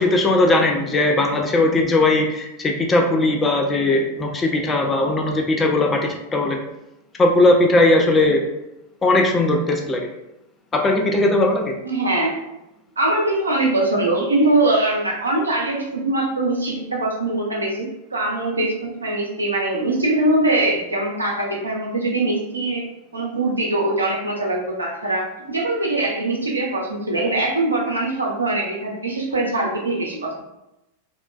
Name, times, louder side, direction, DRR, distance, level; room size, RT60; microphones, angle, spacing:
voice 1, 0.0-6.6 7.2-8.4 9.0-10.1 10.7-11.7, left 2 dB, 20° left, 2 dB, 0.3 m, -18 dB
voice 2, 11.8-12.4 13.0-22.8 23.1-30.4, right 2 dB, 80° right, -2 dB, 0.6 m, -22 dB
3.0 x 2.1 x 2.3 m, 0.92 s
figure-of-eight pair, 90°, 0 cm